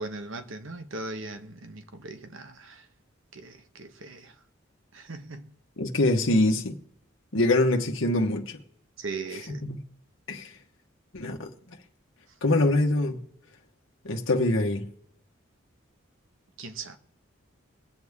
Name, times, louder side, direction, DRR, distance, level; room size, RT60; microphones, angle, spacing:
voice 1, 0.0-2.9 3.3-4.4 4.9-5.5 9.0-9.6 16.6-17.0, right 3 dB, 75° right, 1.1 m, -39 dB
voice 2, 5.8-6.8 7.3-8.6 9.6-9.8 10.3-10.5 11.1-11.5 12.4-13.2 14.0-14.9, left 2 dB, 70° left, 1.2 m, -24 dB
21.5 x 8.1 x 3.6 m
head